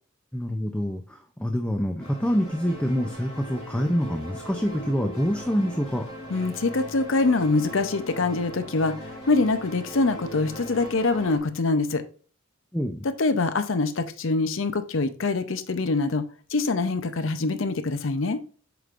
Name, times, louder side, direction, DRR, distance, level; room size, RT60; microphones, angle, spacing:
voice 1, 0.3-6.1 12.7-13.0, equal, 5° left, 4 dB, 0.4 m, -26 dB
sound 1, 2.0-11.4, equal, 35° left, 2.5 m, -39 dB
voice 2, 6.3-12.0 13.2-16.2 16.5-18.4, left 3 dB, 70° left, 10 dB, 0.7 m, -24 dB
7.8 x 5.1 x 2.5 m, 0.40 s
head